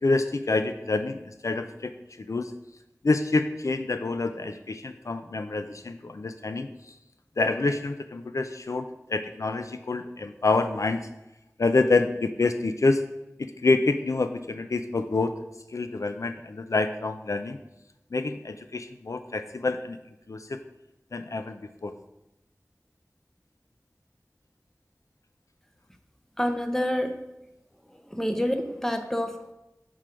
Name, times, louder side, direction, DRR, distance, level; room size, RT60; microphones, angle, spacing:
voice 1, 0.0-2.5 3.0-6.9 7.4-11.1 11.6-13.0 13.4-15.4 15.7-17.6 18.1-20.0 20.3-20.6 21.1-21.9, left 3 dB, 70° left, 9 dB, 0.3 m, -27 dB
voice 2, 26.4-27.2 27.9-29.5, equal, 5° left, 6 dB, 0.7 m, -28 dB
6.1 x 3.8 x 4.4 m, 0.94 s
wide cardioid pair, 45°, 6 cm